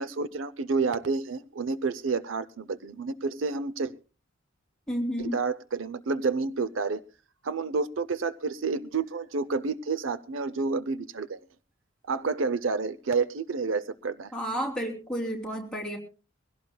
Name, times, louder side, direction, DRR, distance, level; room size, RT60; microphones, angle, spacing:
voice 1, 0.0-3.9 5.2-7.0 7.4-11.4 12.1-14.3, right 4 dB, 65° right, 15 dB, 0.6 m, -29 dB
voice 2, 4.9-5.3 14.3-16.0, equal, 5° left, -1 dB, 3.2 m, -31 dB
22.5 x 16.5 x 2.3 m, 0.33 s
head